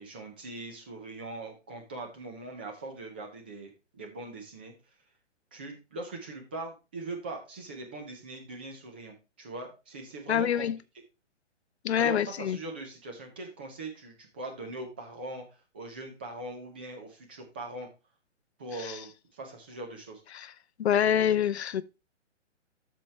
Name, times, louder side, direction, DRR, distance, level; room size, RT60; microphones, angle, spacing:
voice 1, 0.0-4.7 5.5-10.7 12.0-17.9 18.6-20.2, right 2 dB, 10° right, 0.5 m, -41 dB
voice 2, 10.3-10.8 11.8-12.6 18.8-19.0 20.3-20.5 20.8-21.8, left 9 dB, 60° left, 0.6 m, -26 dB
13.0 x 4.5 x 3.2 m
hypercardioid pair, 160°, 37 cm